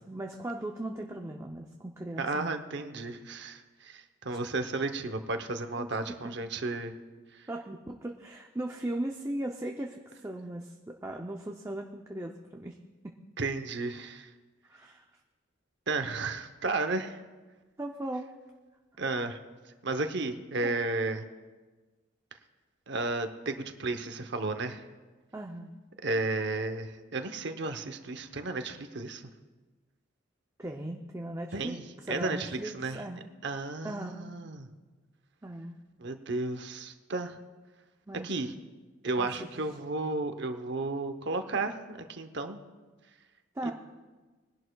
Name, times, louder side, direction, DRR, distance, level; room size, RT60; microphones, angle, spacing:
voice 1, 0.1-2.5 4.3-4.4 5.8-5.9 6.2-6.3 7.5-12.8 13.0-13.1 14.0-14.1 14.7-15.0 17.8-18.3 20.6-20.7 25.3-25.7 30.6-33.3 33.8-34.3 35.4-35.8 38.1-38.5 39.2-39.5 43.6-43.7, right 1 dB, 15° right, 2 dB, 0.5 m, -38 dB
voice 2, 2.2-6.9 7.3-7.5 13.4-14.3 15.9-17.2 19.0-19.4 19.8-21.2 22.9-24.8 26.0-29.2 31.5-33.1 33.4-34.7 36.0-37.4 38.2-38.5 39.0-42.6 43.6-43.7, right 3 dB, 55° right, 7 dB, 0.8 m, -33 dB
22.0 x 11.0 x 2.3 m, 1.3 s
head